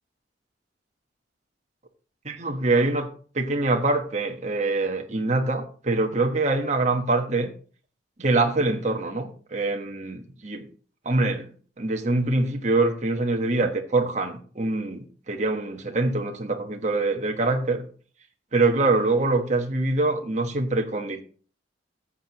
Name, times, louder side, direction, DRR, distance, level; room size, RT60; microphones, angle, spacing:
voice 1, 2.2-3.1 3.3-7.5 8.2-10.7 11.0-17.9 18.5-21.2, right 2 dB, 40° right, 4 dB, 1.3 m, -24 dB
14.5 x 7.8 x 3.0 m, 0.41 s
head